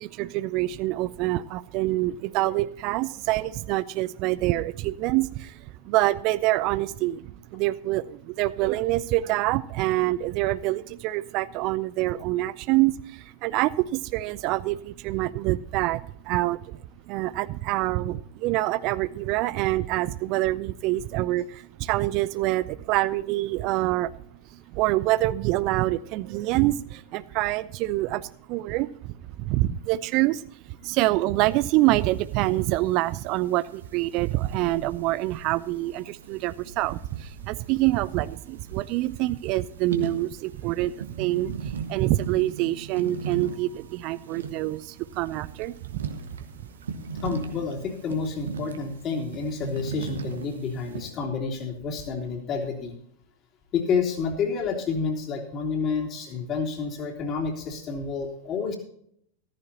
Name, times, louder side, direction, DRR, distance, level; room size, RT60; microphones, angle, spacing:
voice 1, 0.0-16.8 17.1-24.1 24.5-29.1 29.4-46.1, right 17 dB, 40° right, 17 dB, 0.4 m, -26 dB
sound 1, 31.5-51.1, right 5 dB, 65° right, 1.5 m, -39 dB
voice 2, 47.2-53.0 53.7-58.8, left 5 dB, 30° left, 1 dB, 3.3 m, -29 dB
14.5 x 14.0 x 2.9 m, 0.68 s
figure-of-eight pair, 90°, 0 cm